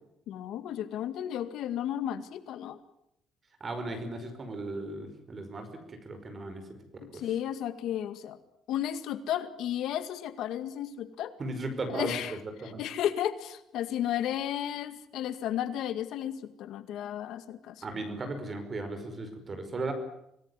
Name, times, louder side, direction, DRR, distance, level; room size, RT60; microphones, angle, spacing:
voice 1, 0.3-2.8 7.0-8.4 8.7-11.3 11.9-12.3 12.8-17.8, left 11 dB, 65° left, 11 dB, 2.0 m, -33 dB
voice 2, 3.6-6.7 7.1-7.3 11.4-12.8 17.8-19.9, right 2 dB, 25° right, 8 dB, 5.3 m, -36 dB
25.5 x 19.0 x 9.9 m, 0.78 s
cardioid pair, 165°, 0 cm